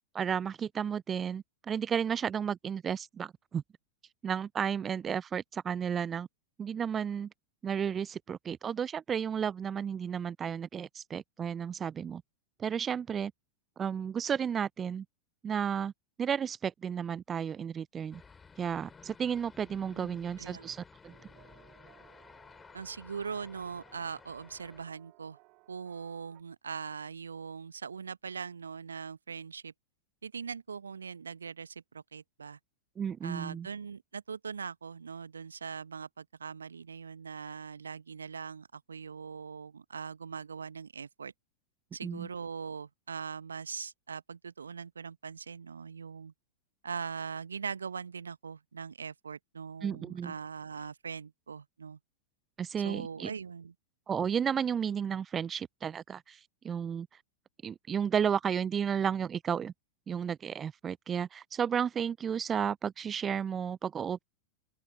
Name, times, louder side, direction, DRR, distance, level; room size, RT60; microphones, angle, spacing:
voice 1, 0.1-3.6 4.2-6.3 6.6-7.3 7.6-12.2 12.6-13.3 13.8-15.0 15.4-15.9 16.2-18.2 18.6-21.1 33.0-33.7 42.0-42.3 49.8-50.3 52.6-53.3 54.1-57.1 57.6-59.7 60.1-64.2, right 7 dB, 20° right, 0.3 m, -33 dB
sound 1, 18.1-24.8, left 5 dB, 15° left, 7.7 m, -55 dB
voice 2, 19.9-20.7 22.7-25.4 25.7-29.7 30.2-32.6 33.2-41.3 41.9-46.3 46.8-52.0 52.8-53.7, right 6 dB, 70° right, 1.0 m, -41 dB
sound 2, 21.0-26.4, right 26 dB, 40° right, 2.8 m, -63 dB
open air
figure-of-eight pair, 90°, 0 cm